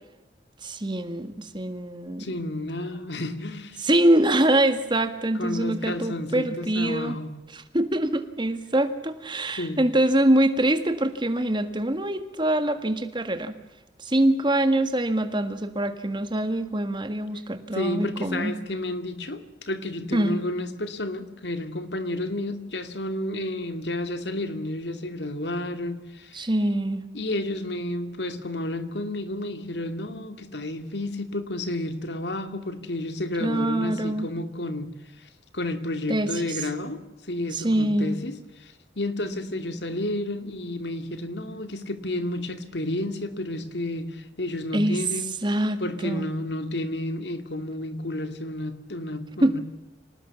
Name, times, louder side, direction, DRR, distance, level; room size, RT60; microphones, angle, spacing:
voice 1, 0.6-2.3 3.8-7.2 7.5-13.5 14.0-18.5 20.1-20.4 26.3-27.0 33.4-34.3 36.1-36.7 37.5-38.2 44.7-45.0 45.4-46.3 49.4-49.6, right 1 dB, 25° right, 9 dB, 1.8 m, -24 dB
voice 2, 2.2-3.8 5.3-7.3 9.6-9.8 17.7-26.5 27.1-34.9 35.2-37.0 37.3-38.4 39.0-45.4 45.8-49.6, left 1 dB, 70° left, 9 dB, 2.3 m, -31 dB
26.5 x 19.0 x 7.2 m, 0.98 s
head